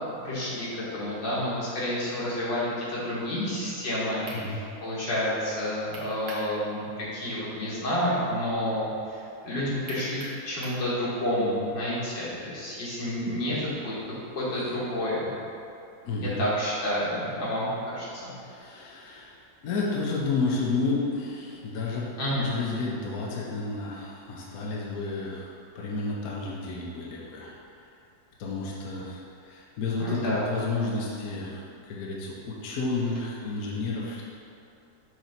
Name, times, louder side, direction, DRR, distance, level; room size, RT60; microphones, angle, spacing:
voice 1, 0.2-13.9 14.3-15.3 16.2-18.3 22.2-22.5 30.0-30.5, left 1 dB, 80° left, -8 dB, 2.4 m, -29 dB
sound 1, 4.3-4.4 5.9-6.5 6.9-7.0 9.9-10.8, right 2 dB, 65° right, 1.7 m, -41 dB
voice 2, 16.0-16.4 18.4-19.4 19.6-22.1 22.4-25.5 25.7-27.5 28.4-34.2, left 3 dB, 60° left, -4 dB, 1.2 m, -31 dB
6.1 x 3.9 x 5.8 m, 2.6 s
omnidirectional pair, 2.0 m